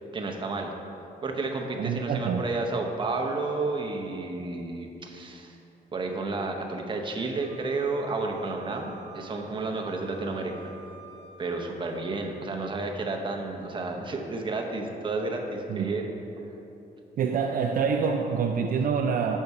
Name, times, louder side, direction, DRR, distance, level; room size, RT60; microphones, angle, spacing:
voice 1, 0.1-0.7 1.2-5.6 5.9-10.7 11.4-16.1, right 3 dB, 30° right, 2 dB, 0.8 m, -31 dB
voice 2, 1.8-2.4 15.7-15.9 17.2-19.4, right 6 dB, 65° right, 4 dB, 0.4 m, -26 dB
Wind instrument woodwind instrument, 7.4-12.1, right 5 dB, 80° left, 1.4 m, -50 dB
6.6 x 5.4 x 4.7 m, 3.0 s
cardioid pair, 110°, 16 cm